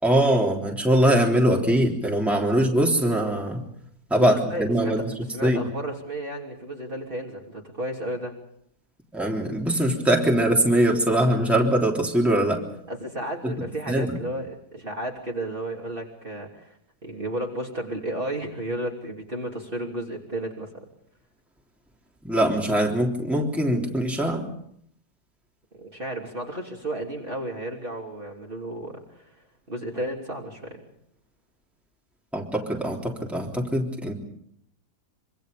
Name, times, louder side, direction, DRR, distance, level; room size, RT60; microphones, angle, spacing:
voice 1, 0.0-3.6 4.1-5.1 5.4-5.6 9.1-12.6 13.4-13.5 13.9-14.2 22.2-24.4 32.3-34.1, right 1 dB, ahead, 0 dB, 3.3 m, -22 dB
voice 2, 4.2-5.0 5.3-8.3 12.9-20.8 25.8-29.3 29.7-30.8, right 1 dB, 30° right, 0 dB, 3.3 m, -33 dB
26.0 x 25.5 x 5.2 m, 0.69 s
omnidirectional pair, 1.8 m